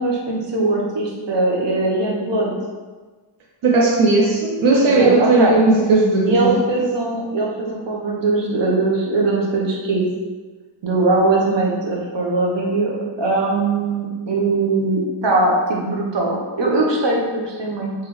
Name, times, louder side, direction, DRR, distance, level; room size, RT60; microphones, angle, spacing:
voice 1, 0.0-2.5 4.9-5.5 6.3-10.0 10.8-12.9 13.2-17.9, right 2 dB, 65° right, -2 dB, 0.9 m, -20 dB
voice 2, 3.6-6.5, right 3 dB, 90° right, -2 dB, 0.6 m, -16 dB
3.6 x 3.3 x 3.0 m, 1.4 s
wide cardioid pair, 80°, 48 cm